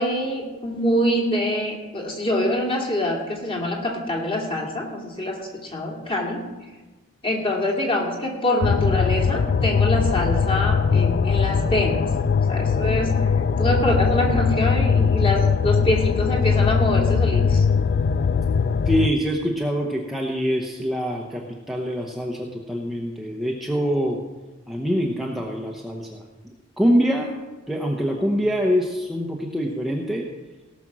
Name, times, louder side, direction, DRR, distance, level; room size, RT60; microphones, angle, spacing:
voice 1, 0.0-6.4 7.2-12.0 12.5-13.2 13.6-17.6, left 1 dB, 25° left, 0 dB, 2.4 m, -25 dB
sound 1, 8.6-19.1, left 6 dB, 50° left, 0.3 m, -20 dB
voice 2, 18.9-24.2 24.7-26.2 26.8-27.3 27.7-30.3, equal, ahead, -1 dB, 0.9 m, -24 dB
18.0 x 6.0 x 6.1 m, 1.2 s
head